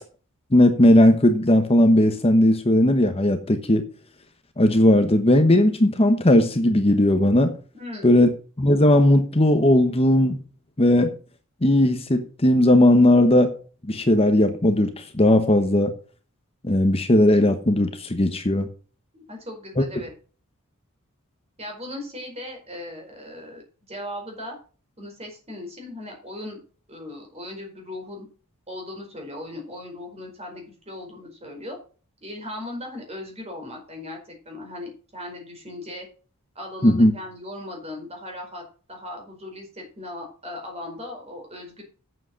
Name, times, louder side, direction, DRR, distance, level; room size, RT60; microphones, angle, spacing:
voice 1, 0.5-3.8 4.6-7.5 8.0-8.3 8.6-10.4 10.8-11.1 11.6-13.5 13.8-15.9 16.6-18.7 36.8-37.1, left 1 dB, 25° left, 7 dB, 1.0 m, -17 dB
voice 2, 7.7-8.3 19.1-20.1 21.6-23.6 23.9-24.6 25.0-26.6 26.9-28.3 28.7-31.8 32.2-36.1 36.5-38.6 38.9-41.8, left 1 dB, 30° right, 2 dB, 4.7 m, -38 dB
8.4 x 7.8 x 6.3 m, 0.38 s
head